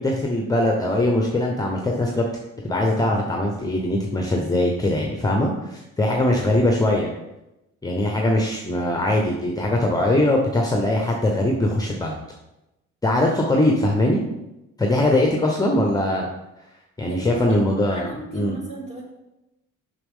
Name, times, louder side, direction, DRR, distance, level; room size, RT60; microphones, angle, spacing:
voice 1, 0.0-2.3 2.6-7.1 7.8-12.2 13.0-14.2 14.8-16.3 17.0-18.6, left 1 dB, 10° left, 0 dB, 0.9 m, -21 dB
voice 2, 17.1-17.6 17.9-19.0, right 1 dB, 20° right, -3 dB, 2.8 m, -36 dB
6.8 x 6.0 x 3.7 m, 0.96 s
cardioid pair, 90°, 30 cm